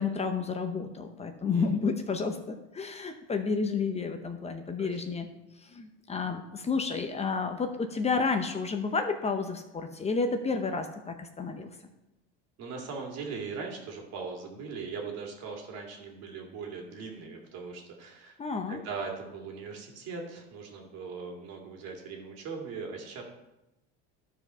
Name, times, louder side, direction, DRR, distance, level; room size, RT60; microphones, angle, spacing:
voice 1, 0.0-5.3 5.6-11.7 18.4-18.8, left 4 dB, 20° left, 6 dB, 0.8 m, -31 dB
voice 2, 12.6-18.4 18.7-23.2, right 5 dB, 60° right, 1 dB, 2.4 m, -40 dB
12.0 x 4.8 x 5.5 m, 0.95 s
supercardioid pair, 120°, 29 cm